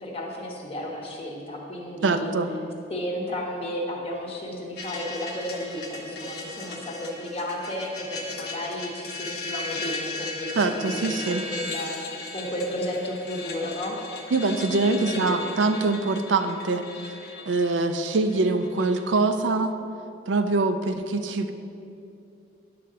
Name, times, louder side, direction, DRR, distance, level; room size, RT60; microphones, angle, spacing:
voice 1, 0.0-2.3 2.9-12.0 12.3-14.0 14.9-15.6, equal, 30° left, -1 dB, 1.1 m, -33 dB
voice 2, 2.0-2.5 10.6-11.4 14.3-17.2 17.5-19.7 20.3-21.5, right 3 dB, 85° right, 8 dB, 0.5 m, -24 dB
sound 1, 4.8-19.2, left 3 dB, 60° left, 1.0 m, -37 dB
10.0 x 3.8 x 6.7 m, 2.7 s
head